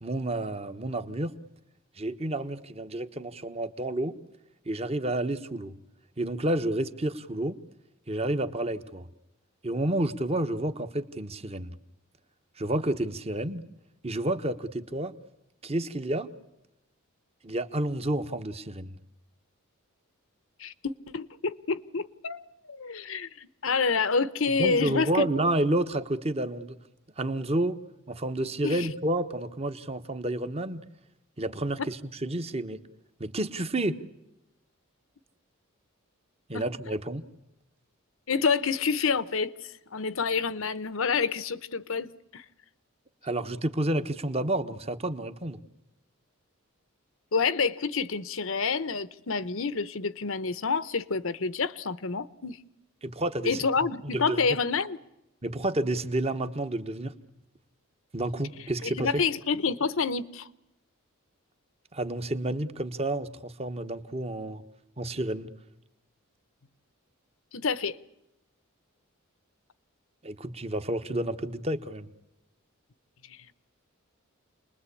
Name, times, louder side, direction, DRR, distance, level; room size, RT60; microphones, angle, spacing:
voice 1, 0.0-1.3 2.0-4.2 4.6-5.7 6.2-7.6 8.1-9.1 9.6-11.8 12.6-13.6 14.0-15.1 15.6-16.3 17.4-19.0 24.5-26.8 27.2-27.8 28.1-30.9 31.4-32.8 33.2-34.0 36.5-37.2 43.2-45.6 53.0-53.6 54.0-54.5 55.4-57.1 58.1-59.2 61.9-64.6 65.0-65.5 70.2-72.1, right 1 dB, 30° right, 1.2 m, -30 dB
voice 2, 20.6-25.3 28.6-28.9 36.5-36.6 38.3-42.4 47.3-52.6 53.4-55.0 58.8-60.5 67.5-68.0, left 5 dB, 65° left, 0.9 m, -28 dB
29.0 x 21.0 x 8.5 m
head